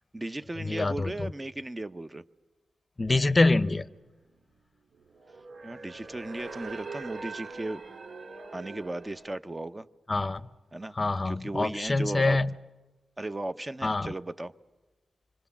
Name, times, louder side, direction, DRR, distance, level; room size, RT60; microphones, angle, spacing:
voice 1, 0.1-2.2 5.6-7.8 8.5-9.9 10.7-11.0 11.3-12.4 13.2-14.5, right 1 dB, 20° right, 11 dB, 0.7 m, -36 dB
voice 2, 0.7-1.3 3.0-3.9 10.1-10.4 11.0-12.5 13.8-14.1, left 2 dB, 30° left, 14 dB, 0.7 m, -25 dB
sound 1, 4.9-9.4, right 4 dB, 65° right, 1.8 m, -42 dB
26.0 x 23.0 x 7.1 m, 1.2 s
cardioid pair, 60°, 0 cm